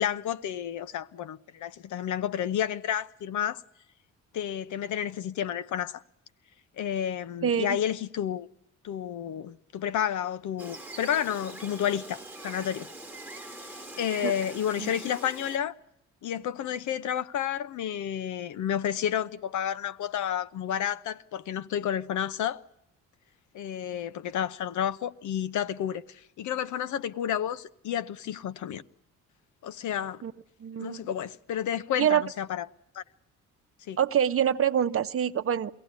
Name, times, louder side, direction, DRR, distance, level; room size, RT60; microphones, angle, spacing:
voice 1, 0.0-3.6 4.3-6.0 6.8-8.5 8.8-12.9 13.7-15.7 16.2-22.6 23.5-28.8 29.6-30.2 30.8-32.7 32.9-33.0 33.9-34.0, left 9 dB, 75° left, 0.9 m, -31 dB
voice 2, 7.4-7.8 14.2-14.3 14.8-14.9 30.2-30.3 30.6-31.1 32.0-32.2 34.0-35.7, right 9 dB, 45° right, 0.9 m, -25 dB
Gull seagull, 10.6-15.6, right 1 dB, 5° right, 1.4 m, -43 dB
22.5 x 17.0 x 9.5 m
cardioid pair, 90°, 30 cm